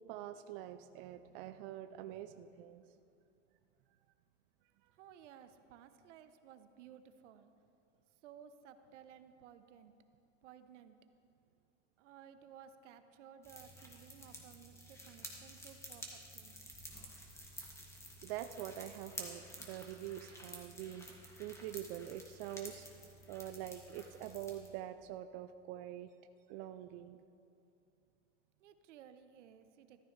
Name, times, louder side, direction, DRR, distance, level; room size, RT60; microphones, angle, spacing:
voice 1, 0.1-2.8 18.2-22.9 23.3-26.1 26.5-27.2, right 12 dB, 50° right, 9 dB, 0.5 m, -45 dB
voice 2, 5.0-7.5 8.2-9.9 10.4-11.0 12.0-16.6 28.6-30.0, right 8 dB, 75° right, 10 dB, 0.9 m, -57 dB
sound 1, 13.4-24.7, equal, 10° left, 1.9 m, -51 dB
14.0 x 13.0 x 3.3 m, 2.6 s
hypercardioid pair, 110°, 36 cm